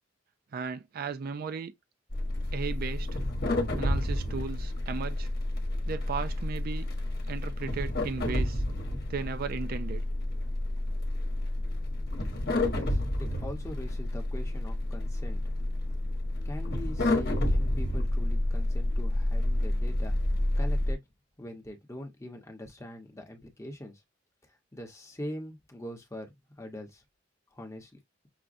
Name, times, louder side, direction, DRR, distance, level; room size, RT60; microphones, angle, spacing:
voice 1, 0.5-1.7 2.5-3.1 3.8-5.3 5.9-6.9 7.3-8.6 9.1-10.0, right 5 dB, 50° right, 0.4 m, -35 dB
sound 1, 2.1-20.9, left 1 dB, 55° left, 1.1 m, -30 dB
voice 2, 12.6-15.4 16.4-20.2 20.6-21.0 21.4-24.0 24.7-27.0 27.5-28.0, left 1 dB, 15° left, 0.9 m, -42 dB
5.9 x 2.2 x 2.5 m
head